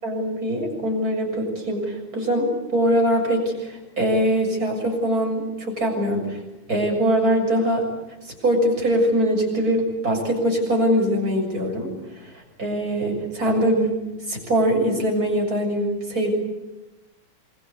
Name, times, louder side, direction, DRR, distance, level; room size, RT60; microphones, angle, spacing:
voice 1, 0.0-6.4 6.7-7.9 8.2-14.0 14.3-16.3, equal, 45° right, 1 dB, 7.6 m, -22 dB
27.5 x 24.0 x 8.3 m, 1.0 s
omnidirectional pair, 2.3 m